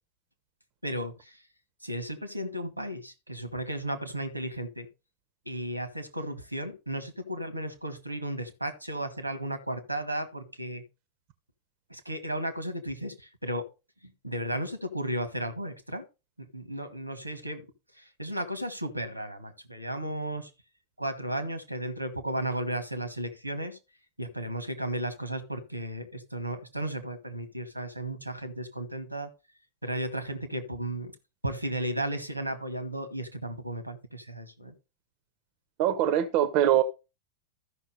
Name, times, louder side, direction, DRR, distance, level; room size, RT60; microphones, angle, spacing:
voice 1, 0.8-1.4 1.8-4.9 5.4-10.8 11.9-13.6 14.2-16.0 16.5-17.6 18.0-20.5 21.0-23.8 24.2-29.3 29.8-31.1 31.4-34.7, right 1 dB, 90° right, 1.5 m, -34 dB
voice 2, 35.8-36.8, right 11 dB, 45° right, 0.8 m, -23 dB
13.5 x 5.8 x 4.1 m
figure-of-eight pair, 90°, 0 cm